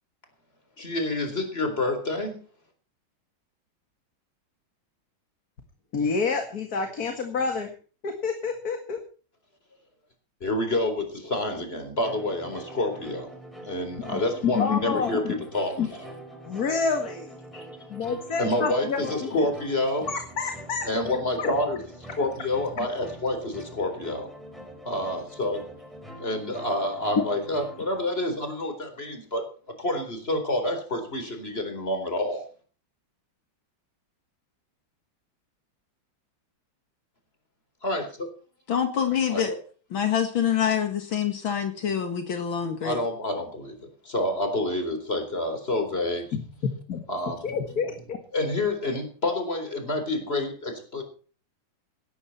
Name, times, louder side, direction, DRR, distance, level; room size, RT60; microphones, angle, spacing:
voice 1, 0.8-2.4 10.4-13.3 13.6-16.0 18.4-20.1 20.8-21.8 22.1-24.2 24.9-25.6 26.2-29.5 29.8-32.4 37.8-38.3 39.3-39.6 42.8-46.3 47.1-47.4 48.3-51.0, left 1 dB, 30° left, 4.2 m, -28 dB
voice 2, 5.9-7.7 8.0-9.0 14.1-15.4 15.8-15.9 16.5-17.4 17.9-19.4 20.1-21.0 21.4-21.6 22.2-22.3 22.8-22.9 27.2-27.3 46.3-46.4 46.9-47.0 47.4-48.2, left 5 dB, 50° left, 2.3 m, -28 dB
sound 1, 12.0-28.0, right 1 dB, ahead, 4.9 m, -44 dB
voice 3, 38.7-39.5 39.9-43.0, left 8 dB, 75° left, 2.5 m, -26 dB
17.5 x 13.0 x 4.3 m
omnidirectional pair, 2.2 m